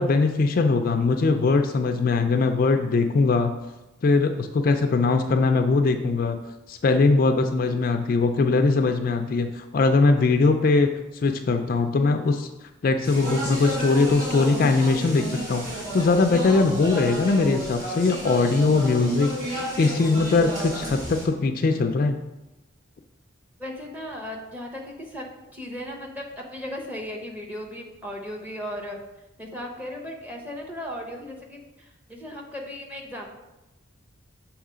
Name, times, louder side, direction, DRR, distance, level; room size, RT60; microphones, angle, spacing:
voice 1, 0.0-3.5 4.0-6.4 6.7-12.5 12.8-22.2, left 3 dB, 45° left, 6 dB, 0.3 m, -21 dB
Speech, 13.0-21.2, right 1 dB, 35° right, 2.1 m, -32 dB
voice 2, 23.6-25.3 25.5-29.0 29.4-33.3, left 1 dB, 10° right, 0 dB, 0.8 m, -36 dB
6.4 x 3.0 x 4.9 m, 1.0 s
head